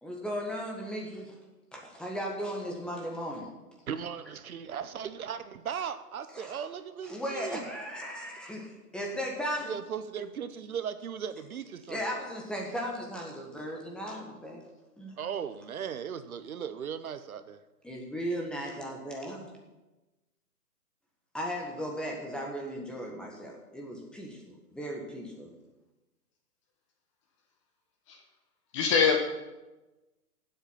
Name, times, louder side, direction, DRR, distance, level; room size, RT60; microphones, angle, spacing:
voice 1, 0.0-1.4 1.7-3.5 6.3-6.6 7.1-9.7 11.9-14.6 15.0-15.2 17.8-19.5 21.3-25.5, equal, ahead, -1 dB, 1.5 m, -36 dB
voice 2, 3.9-7.6 9.6-12.0 15.2-17.6, right 8 dB, 60° right, 12 dB, 1.0 m, -37 dB
voice 3, 28.7-29.2, left 6 dB, 20° left, 4 dB, 0.9 m, -23 dB
15.5 x 8.0 x 5.8 m, 1.1 s
hypercardioid pair, 145°, 48 cm